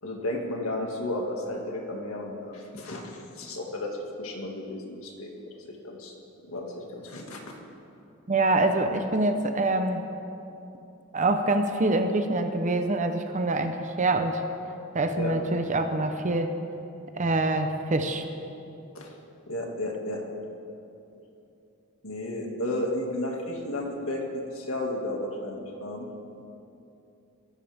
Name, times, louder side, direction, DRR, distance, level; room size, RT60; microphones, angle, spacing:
voice 1, 0.0-6.1 6.5-7.4 15.2-15.3 18.9-19.1 19.5-20.2 22.0-26.0, left 1 dB, 85° left, 0 dB, 2.1 m, -33 dB
voice 2, 8.3-10.0 11.1-14.4 14.9-16.5 17.2-18.2, right 2 dB, 35° right, 7 dB, 0.8 m, -25 dB
22.0 x 12.5 x 3.5 m, 2.8 s
head